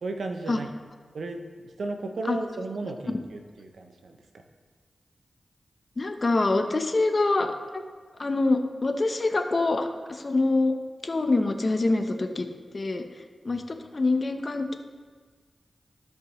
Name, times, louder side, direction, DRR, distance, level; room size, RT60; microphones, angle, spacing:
voice 1, 0.0-0.7 1.1-4.4 13.5-13.6, right 2 dB, 80° right, 5 dB, 0.7 m, -35 dB
voice 2, 6.0-7.8 8.2-10.8 11.0-12.5 12.7-14.8, left 2 dB, 50° left, 6 dB, 0.9 m, -25 dB
15.5 x 5.3 x 3.1 m, 1.5 s
cardioid pair, 45°, 0 cm